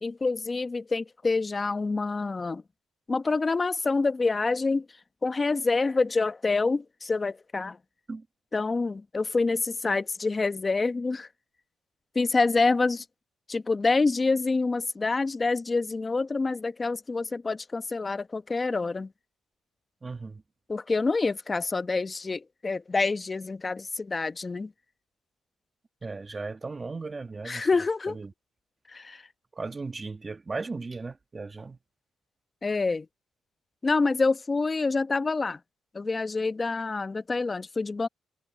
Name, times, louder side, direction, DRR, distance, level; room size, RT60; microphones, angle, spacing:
voice 1, 0.0-2.6 3.1-4.9 5.2-7.8 8.5-11.3 12.1-13.0 13.5-19.1 20.7-24.7 27.4-28.2 28.9-29.2 32.6-33.1 33.8-35.6 35.9-38.1, left 3 dB, 25° left, 1.1 m, -27 dB
voice 2, 20.0-20.4 26.0-27.7 28.1-28.3 29.5-31.8, right 3 dB, 25° right, 1.6 m, -36 dB
cardioid pair, 90°, 0 cm